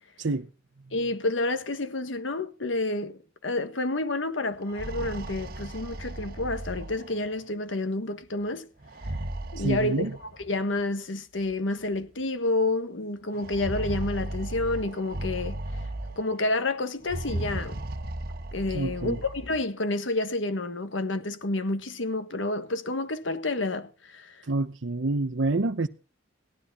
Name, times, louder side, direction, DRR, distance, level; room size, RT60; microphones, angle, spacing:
voice 1, 0.9-8.7 9.5-15.6 16.2-17.8 18.5-24.4, left 2 dB, 80° left, 1.4 m, -29 dB
sound 1, 4.5-7.4 8.8-10.5 11.5-11.6 11.9-12.0 13.3-16.4 17.0-19.6, right 1 dB, 50° right, 1.3 m, -36 dB
voice 2, 9.6-10.1 18.7-19.2 24.5-25.9, right 2 dB, 75° right, 0.8 m, -27 dB
17.5 x 12.5 x 4.2 m
head